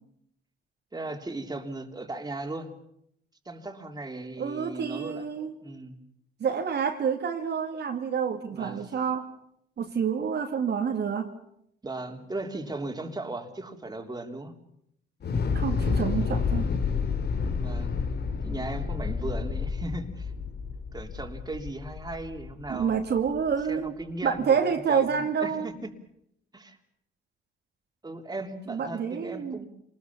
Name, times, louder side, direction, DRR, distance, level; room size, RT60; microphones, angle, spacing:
voice 1, 0.9-2.7 3.4-5.3 5.6-5.9 8.5-8.9 11.8-14.5 17.5-17.9 18.4-20.3 20.9-22.9 23.7-25.9 26.5-26.8 28.0-29.7, right 2 dB, 20° right, 4 dB, 3.4 m, -37 dB
voice 2, 4.4-5.5 6.4-9.3 9.8-11.3 15.5-16.7 22.7-23.9 24.2-25.7 28.7-29.6, right 7 dB, 60° right, 3 dB, 2.3 m, -28 dB
Thunder / Explosion, 15.2-23.4, left 5 dB, 55° left, 2.6 m, -30 dB
27.0 x 20.5 x 7.2 m, 0.73 s
cardioid pair, 90°, 20 cm